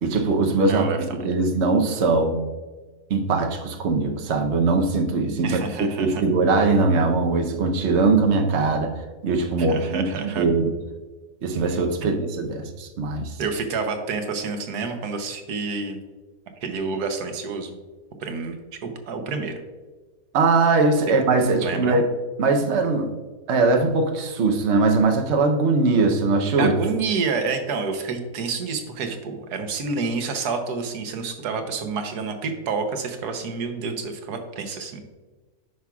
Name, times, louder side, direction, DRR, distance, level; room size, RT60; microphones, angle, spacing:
voice 1, 0.0-2.4 3.1-8.9 9.2-10.1 10.4-10.7 11.4-13.4 20.3-22.0 22.4-23.1 23.5-26.7, right 3 dB, 55° right, 3 dB, 1.0 m, -21 dB
voice 2, 0.7-1.2 5.4-6.2 9.6-10.5 12.0-12.1 13.4-16.0 16.6-17.8 18.2-19.6 21.6-22.0 26.6-35.1, right 4 dB, 85° right, 6 dB, 1.4 m, -29 dB
9.7 x 5.8 x 2.3 m, 1.3 s
omnidirectional pair, 1.6 m